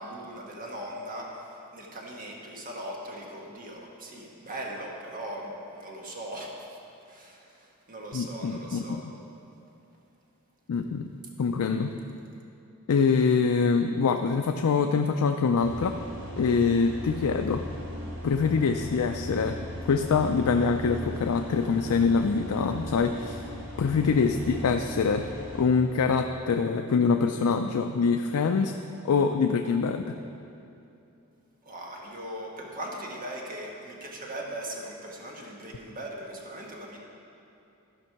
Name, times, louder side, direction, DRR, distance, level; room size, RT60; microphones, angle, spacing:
voice 1, 0.0-6.8 7.1-9.0 24.3-24.4 31.6-37.0, right 1 dB, 40° right, -1 dB, 1.4 m, -39 dB
voice 2, 8.1-9.1 10.7-11.1 11.4-11.9 12.9-16.0 16.4-17.6 18.2-19.6 19.8-23.5 23.8-25.2 25.5-28.7 29.0-30.2, left 5 dB, 80° left, 5 dB, 0.4 m, -24 dB
sound 1, 15.6-25.6, left 1 dB, 65° right, 2.5 m, -38 dB
14.0 x 5.3 x 5.8 m, 2.7 s
head